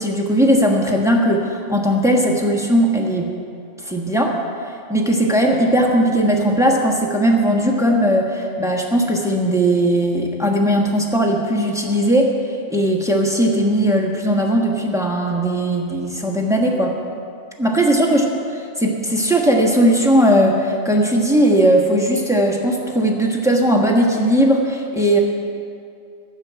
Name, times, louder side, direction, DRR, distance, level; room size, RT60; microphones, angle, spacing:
voice 1, 0.0-3.3 3.9-4.4 4.9-12.3 12.7-16.9 17.6-18.3 18.8-25.2, right 1 dB, 5° right, 0 dB, 1.2 m, -18 dB
12.0 x 7.3 x 9.4 m, 2.4 s
omnidirectional pair, 1.2 m